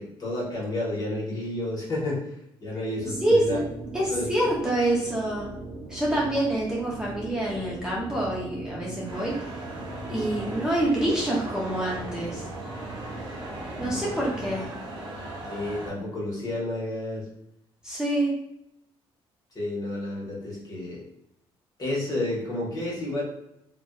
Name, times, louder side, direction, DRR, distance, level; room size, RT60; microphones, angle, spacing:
voice 1, 0.0-2.2 2.6-3.6 4.1-4.3 10.1-10.3 13.8-14.1 15.5-17.2 19.5-21.0 21.8-23.2, left 1 dB, 40° left, -5 dB, 1.1 m, -31 dB
sound 1, 3.0-14.7, right 3 dB, 85° right, 0.6 m, -40 dB
voice 2, 3.2-3.6 3.9-5.5 5.9-9.6 10.1-12.4 13.8-14.7 17.8-18.3, right 1 dB, 5° right, -5 dB, 0.6 m, -26 dB
sound 2, 9.1-15.9, right 1 dB, 50° right, 0.8 m, -38 dB
2.6 x 2.1 x 2.2 m, 0.81 s
cardioid pair, 85°, 10 cm